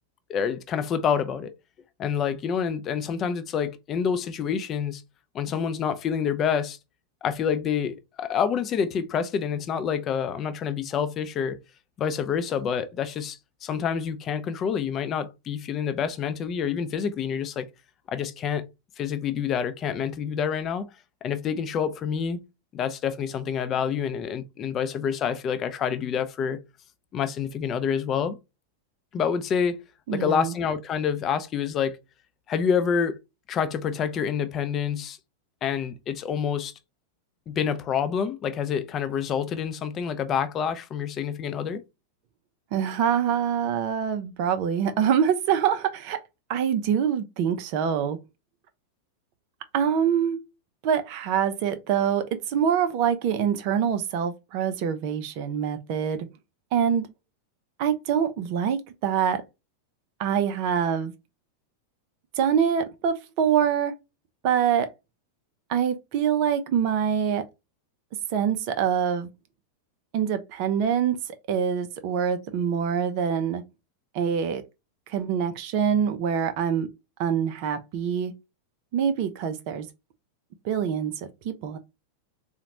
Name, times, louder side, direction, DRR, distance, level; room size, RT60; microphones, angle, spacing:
voice 1, 0.3-1.5 2.0-5.0 5.3-6.8 7.2-11.6 12.0-17.7 18.1-18.7 19.0-20.9 21.2-22.4 22.7-26.6 27.1-28.4 29.1-29.8 30.1-32.0 32.5-33.2 33.5-35.2 35.6-36.7 37.5-41.8, left 7 dB, 30° left, 0.4 m, -27 dB
voice 2, 30.1-30.5 42.7-46.2 46.5-48.2 49.7-50.4 50.8-56.3 56.7-57.1 57.8-59.4 60.2-61.1 62.4-63.9 64.4-64.9 65.7-67.4 68.3-69.3 70.1-71.2 71.5-73.6 74.1-74.6 75.1-76.9 77.2-78.3 78.9-79.9 80.6-81.8, right 8 dB, 45° right, 0.4 m, -25 dB
3.9 x 2.1 x 2.8 m
figure-of-eight pair, 90°, 0 cm